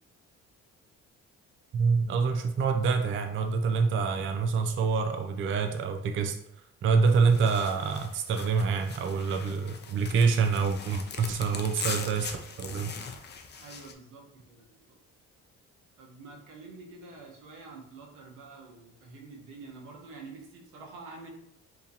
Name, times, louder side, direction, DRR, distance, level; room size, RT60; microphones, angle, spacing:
voice 1, 1.7-6.4 6.8-12.9, right 5 dB, 40° right, 5 dB, 0.4 m, -26 dB
sound 1, 7.1-13.9, left 5 dB, 35° left, 0.5 m, -41 dB
voice 2, 13.6-15.0 16.0-21.3, right 3 dB, 90° right, 0 dB, 0.9 m, -47 dB
2.9 x 2.8 x 3.8 m, 0.76 s
cardioid pair, 90°, 30 cm